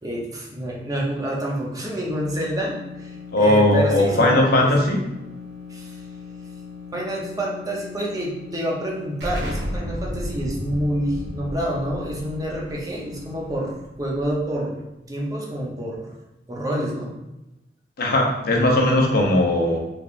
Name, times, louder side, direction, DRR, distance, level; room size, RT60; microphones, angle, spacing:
voice 1, 0.0-4.9 5.7-6.0 6.9-14.8 15.1-16.1 16.5-17.1, right 1 dB, 20° right, -3 dB, 0.7 m, -28 dB
sound 1, 2.0-13.7, left 6 dB, 5° right, 1.2 m, -40 dB
voice 2, 3.3-5.0 18.0-19.8, left 1 dB, 60° left, 0 dB, 0.7 m, -18 dB
Explosion, 9.2-14.6, equal, 85° right, 0.8 m, -33 dB
3.4 x 3.3 x 2.5 m, 0.95 s
head